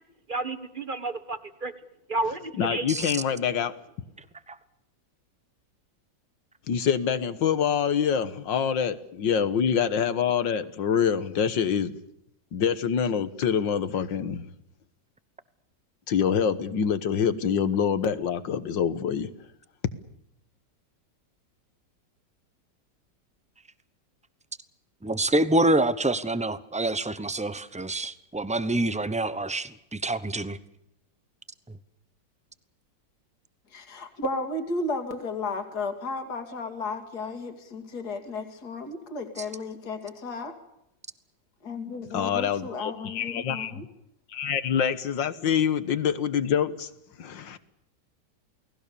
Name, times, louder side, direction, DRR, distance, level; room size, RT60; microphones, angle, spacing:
voice 1, 0.3-1.7 2.1-2.8, right 2 dB, 30° right, 11 dB, 1.5 m, -31 dB
voice 2, 2.6-3.7 6.7-11.9 12.5-14.5 16.1-19.3 42.1-43.8 44.3-46.9 47.2-47.6, left 7 dB, 80° left, 13 dB, 2.0 m, -26 dB
voice 3, 25.0-30.6, right 2 dB, 5° right, 14 dB, 0.5 m, -26 dB
voice 4, 33.7-40.5 41.6-43.8, left 3 dB, 55° left, 7 dB, 3.0 m, -34 dB
29.0 x 19.5 x 7.0 m, 0.81 s
omnidirectional pair, 2.0 m